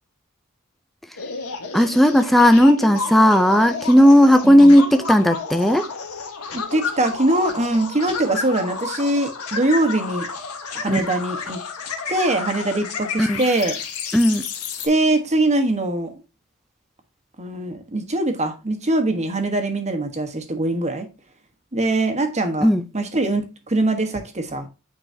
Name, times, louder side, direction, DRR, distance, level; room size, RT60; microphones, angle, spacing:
sound 1, 1.2-14.9, left 5 dB, 80° left, 1.4 m, -31 dB
voice 1, 1.7-5.9 10.9-11.0 13.2-13.4 14.1-14.5 22.6-22.9, equal, ahead, 0.5 m, -14 dB
voice 2, 4.4-4.8 6.5-10.3 10.7-11.6 12.1-13.8 14.8-16.1 17.4-21.1 21.7-22.7 22.9-24.7, right 2 dB, 30° right, 1.2 m, -22 dB
9.2 x 3.9 x 2.7 m
head